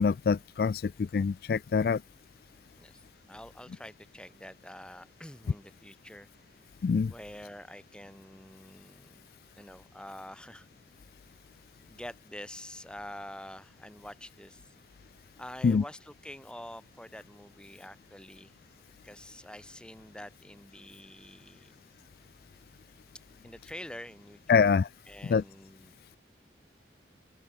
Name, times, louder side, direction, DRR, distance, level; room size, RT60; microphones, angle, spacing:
voice 1, 0.0-2.0 6.8-7.1 15.6-15.8 24.5-24.9 25.2-25.4, left 5 dB, 55° left, 0.3 m, -25 dB
voice 2, 2.8-6.3 7.1-9.3 9.5-10.7 11.9-14.7 15.4-18.5 19.0-21.7 23.4-24.7 25.1-26.0, left 1 dB, 5° left, 2.0 m, -47 dB
head